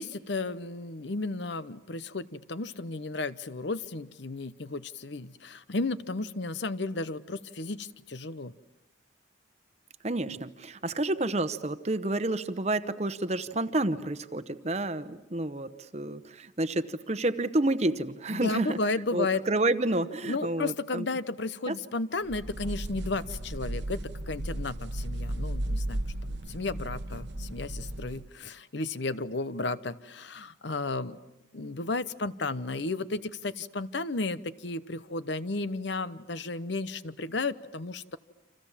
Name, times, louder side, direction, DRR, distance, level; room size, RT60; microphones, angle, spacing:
voice 1, 0.0-8.5 18.3-19.4 20.2-31.2 31.5-38.2, left 3 dB, 65° left, 15 dB, 0.9 m, -33 dB
voice 2, 10.0-18.8 19.1-21.1 21.7-21.8, right 2 dB, 35° right, 12 dB, 1.0 m, -29 dB
sound 1, 22.3-28.3, right 1 dB, 65° right, 1.1 m, -35 dB
30.0 x 26.5 x 7.4 m, 0.94 s
head